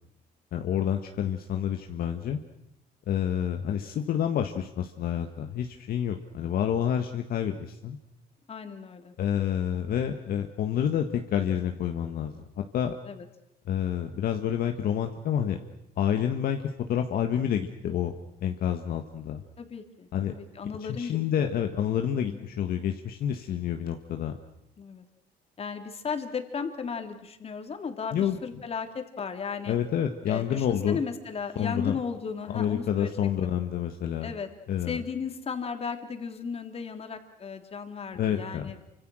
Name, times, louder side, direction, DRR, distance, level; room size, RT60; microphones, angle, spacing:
voice 1, 0.5-2.4 3.1-8.0 9.2-12.9 13.7-15.6 16.0-16.6 16.9-18.1 18.4-19.4 20.1-20.3 20.9-24.4 28.1-28.4 29.7-31.0 31.6-32.0 32.5-34.3 34.7-35.0 38.1-38.7, left 9 dB, 60° left, 5 dB, 1.7 m, -28 dB
voice 2, 8.5-9.1 13.0-13.2 19.6-21.5 22.2-22.5 24.8-25.0 25.6-29.8 30.3-33.1 33.4-33.5 34.2-34.5 34.9-38.8, left 6 dB, 35° left, 6 dB, 3.2 m, -35 dB
28.5 x 25.5 x 6.4 m, 0.80 s
cardioid pair, 110°, 17 cm